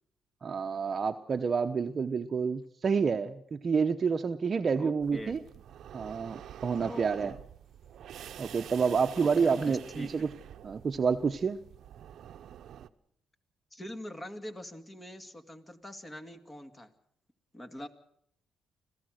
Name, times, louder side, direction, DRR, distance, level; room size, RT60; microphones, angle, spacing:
voice 1, 0.4-5.4 5.9-7.3 8.4-10.3 10.6-11.6, right 5 dB, 40° right, 5 dB, 0.9 m, -29 dB
voice 2, 4.8-5.4 6.8-7.4 9.2-10.3 13.7-16.9 17.5-17.9, left 1 dB, 20° left, 7 dB, 2.2 m, -43 dB
sound 1, 5.0-12.9, right 10 dB, 70° right, 0.9 m, -48 dB
25.5 x 15.5 x 6.5 m, 0.69 s
cardioid pair, 90°, 0 cm